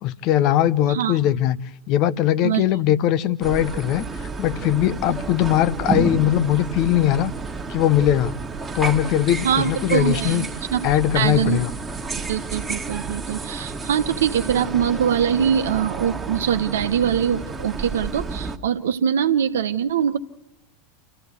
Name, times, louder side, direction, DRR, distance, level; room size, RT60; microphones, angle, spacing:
voice 1, 0.0-7.3 7.7-8.4 8.7-10.5 10.8-11.7, left 12 dB, 45° left, 0.7 m, -20 dB
sound 1, 3.4-18.6, right 4 dB, 15° right, 1.7 m, -31 dB
voice 2, 9.4-10.8 11.1-11.6 12.3-20.2, right 8 dB, 70° right, 1.1 m, -23 dB
27.5 x 15.0 x 8.1 m
figure-of-eight pair, 85°, 0 cm